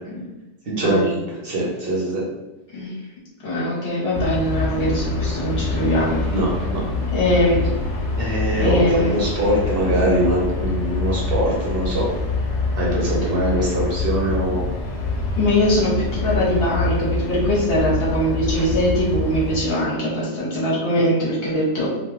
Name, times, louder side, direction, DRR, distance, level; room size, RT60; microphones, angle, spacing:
voice 1, 0.7-2.2 6.3-6.8 8.2-12.1 12.7-14.6, right 1 dB, 55° right, -4 dB, 0.8 m, -22 dB
voice 2, 3.4-6.2 7.1-7.7 8.6-9.2 15.3-21.9, equal, 60° left, -6 dB, 1.1 m, -21 dB
sound 1, 4.1-19.6, left 3 dB, 85° left, 0.9 m, -25 dB
2.4 x 2.2 x 3.1 m, 1.0 s
omnidirectional pair, 1.2 m